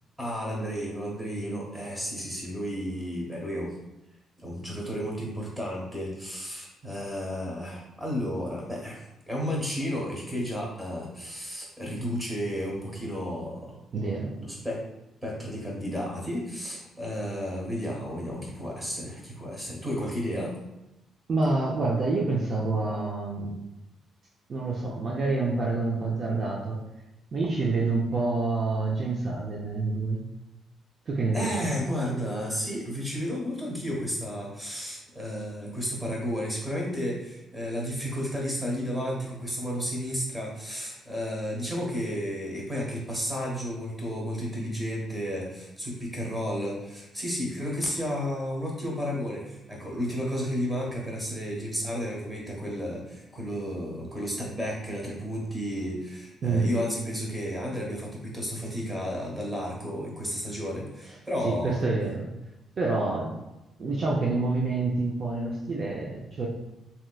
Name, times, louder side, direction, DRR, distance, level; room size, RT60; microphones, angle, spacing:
voice 1, 0.2-3.7 4.4-13.8 14.4-14.8 15.2-20.6 31.3-61.8, equal, 10° right, -3 dB, 1.2 m, -32 dB
voice 2, 13.9-14.6 21.3-23.6 24.5-26.8 27.3-30.2 31.1-31.7 56.4-56.7 61.4-62.3 62.8-63.4 63.8-66.5, right 3 dB, 50° right, -3 dB, 0.5 m, -27 dB
3.3 x 2.8 x 2.3 m, 0.93 s
cardioid pair, 90°, 0 cm